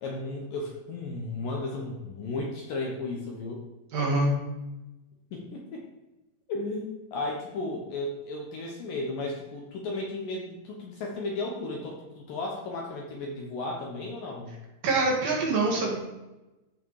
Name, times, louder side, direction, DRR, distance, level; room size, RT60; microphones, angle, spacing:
voice 1, 0.0-3.6 5.3-5.8 6.5-14.6, left 2 dB, 65° left, 0 dB, 2.4 m, -34 dB
voice 2, 3.9-4.3 14.8-16.0, right 3 dB, 60° right, -1 dB, 3.3 m, -25 dB
14.5 x 4.8 x 4.8 m, 1.0 s
omnidirectional pair, 5.1 m